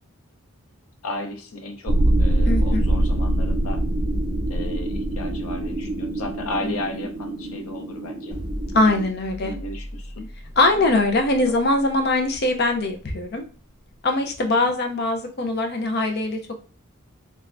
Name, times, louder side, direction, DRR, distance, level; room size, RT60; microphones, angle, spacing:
voice 1, 1.0-3.8 4.5-8.4 9.4-10.3 10.8-10.9 11.3-11.5 14.6-14.7, left 2 dB, 90° left, 5 dB, 0.7 m, -34 dB
sound 1, 1.9-9.1, right 1 dB, 85° right, 0.5 m, -24 dB
voice 2, 2.4-2.9 6.6-6.8 8.7-9.5 10.6-13.4 14.0-16.6, left 2 dB, 50° left, 5 dB, 0.5 m, -22 dB
sound 2, 8.3-14.5, equal, 5° right, 1.7 m, -38 dB
3.3 x 3.2 x 2.5 m, 0.36 s
head